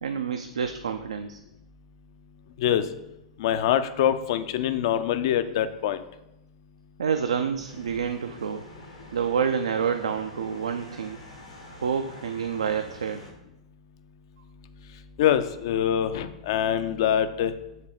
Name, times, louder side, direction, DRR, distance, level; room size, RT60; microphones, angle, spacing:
voice 1, 0.0-1.4 7.0-8.7 9.1-11.2 11.8-13.2, right 7 dB, 70° right, 7 dB, 0.3 m, -28 dB
voice 2, 3.4-6.0 15.2-17.5, left 10 dB, 50° left, 11 dB, 0.4 m, -24 dB
sound 1, 7.6-13.3, left 1 dB, 85° left, 1.3 m, -46 dB
7.1 x 3.3 x 3.9 m, 0.89 s
figure-of-eight pair, 100°, 3 cm